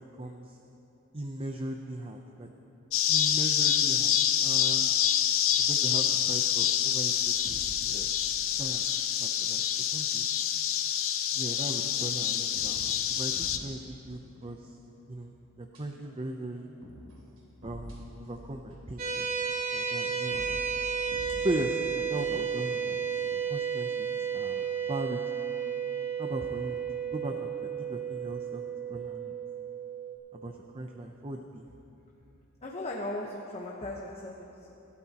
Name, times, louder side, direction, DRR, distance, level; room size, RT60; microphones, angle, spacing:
voice 1, 0.2-0.6 1.1-2.5 3.1-4.1 4.4-4.9 5.7-7.1 7.4-8.1 8.6-8.9 9.2-9.6 9.9-10.3 11.3-14.7 15.1-16.7 17.6-19.3 19.7-20.6 21.4-23.0 23.2-25.2 26.2-26.8 27.1-28.6 28.9-29.4 30.3-31.7, right 1 dB, 25° right, 3 dB, 0.6 m, -38 dB
sound 1, 2.9-13.6, left 10 dB, 70° left, 0.7 m, -27 dB
sound 2, 7.2-9.0 9.3-9.6 10.1-10.2 11.2-11.9 12.3-15.2 15.7-16.1 16.6-19.1 19.8-22.7 23.0-23.1, equal, 70° right, 3.3 m, -49 dB
sound 3, 19.0-30.2, right 7 dB, 45° right, 2.3 m, -32 dB
voice 2, 32.6-34.8, left 1 dB, 30° left, -2 dB, 1.1 m, -38 dB
25.0 x 12.5 x 2.9 m, 2.9 s
head